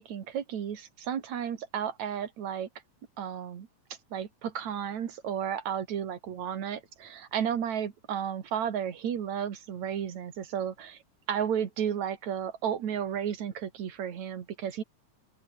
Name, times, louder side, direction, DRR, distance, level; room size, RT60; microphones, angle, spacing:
voice 1, 0.0-2.7 3.2-3.7 4.1-11.0 11.3-14.8, right 8 dB, 70° right, 3.5 m, -33 dB
open air
omnidirectional pair, 3.4 m